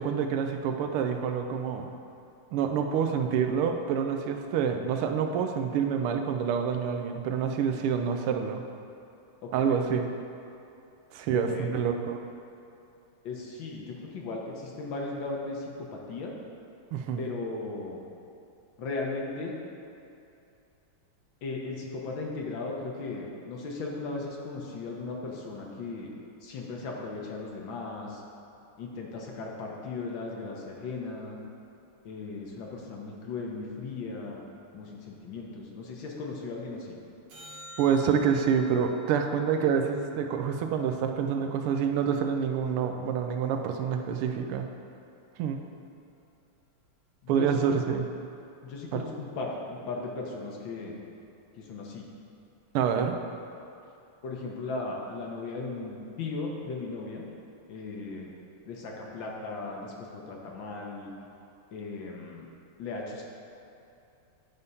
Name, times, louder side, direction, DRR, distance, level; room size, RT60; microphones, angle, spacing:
voice 1, 0.0-1.9 2.5-8.6 9.5-10.1 11.1-12.2 16.9-17.2 37.8-44.7 45.4-45.6 47.3-48.1 48.9-49.0 52.7-53.2, right 7 dB, 85° right, 5 dB, 1.5 m, -27 dB
voice 2, 9.4-9.8 11.3-11.8 13.2-16.3 17.2-18.0 18.8-19.5 21.4-26.1 26.4-28.2 28.8-31.4 32.0-34.4 34.7-37.0 47.2-47.8 48.6-51.0 51.6-52.1 54.2-57.3 57.7-58.3 58.7-61.1 61.7-62.5 62.8-63.3, left 3 dB, 65° left, -1 dB, 1.6 m, -37 dB
sound 1, 37.3-41.8 48.3-48.4, left 2 dB, 70° right, 2.2 m, -50 dB
9.5 x 3.5 x 5.4 m, 2.7 s
omnidirectional pair, 2.4 m